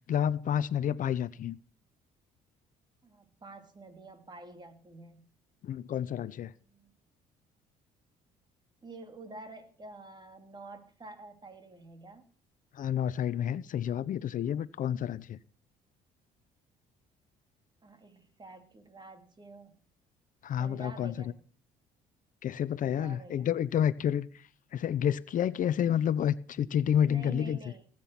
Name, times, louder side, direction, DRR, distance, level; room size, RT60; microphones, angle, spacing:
voice 1, 0.1-1.6 5.6-6.5 12.7-15.4 20.4-21.2 22.4-27.6, left 9 dB, 55° left, 0.8 m, -29 dB
voice 2, 3.0-5.3 6.4-6.9 8.8-12.2 17.8-19.8 20.6-21.4 22.8-23.5 27.1-27.9, right 3 dB, 25° right, 2.8 m, -48 dB
19.0 x 9.1 x 5.9 m
supercardioid pair, 85°, 16 cm